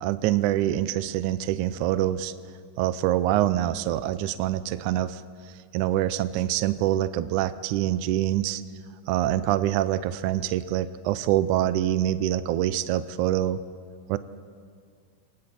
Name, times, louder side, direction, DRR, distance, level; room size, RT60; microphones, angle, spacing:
voice 1, 0.0-2.3 2.8-5.2 5.7-8.6 9.1-13.6 14.1-14.2, right 13 dB, 85° right, 13 dB, 1.7 m, -25 dB
27.5 x 23.5 x 4.3 m, 2.1 s
omnidirectional pair, 4.2 m